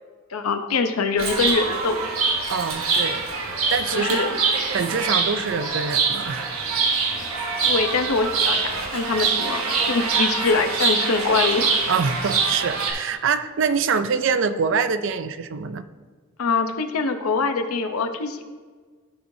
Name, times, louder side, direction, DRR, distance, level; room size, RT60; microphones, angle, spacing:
voice 1, 0.3-2.1 3.9-4.4 7.2-7.3 7.6-11.7 16.4-18.4, left 4 dB, 90° left, 7 dB, 0.7 m, -24 dB
Chirp tweet, 1.2-12.9, right 4 dB, 85° right, 1.4 m, -24 dB
voice 2, 2.5-3.3 3.7-4.3 4.7-6.5 11.9-15.9, right 5 dB, 60° right, 11 dB, 0.4 m, -24 dB
14.0 x 4.7 x 2.7 m, 1.5 s
head